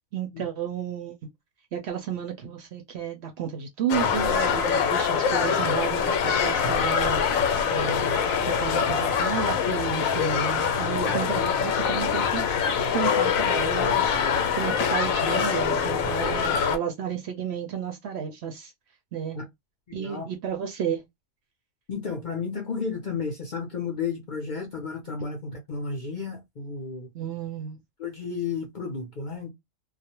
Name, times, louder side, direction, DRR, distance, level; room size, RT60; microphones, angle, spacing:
voice 1, 0.1-1.1 1.7-7.2 7.7-12.5 12.9-18.7 19.1-19.4 19.9-21.1 27.1-27.8, right 8 dB, 65° right, 0.7 m, -32 dB
sound 1, 3.9-16.8, left 7 dB, 85° left, 1.0 m, -24 dB
voice 2, 19.9-20.3 21.9-27.1 28.0-29.5, left 5 dB, 50° left, 0.6 m, -32 dB
2.4 x 2.1 x 2.8 m
omnidirectional pair, 1.4 m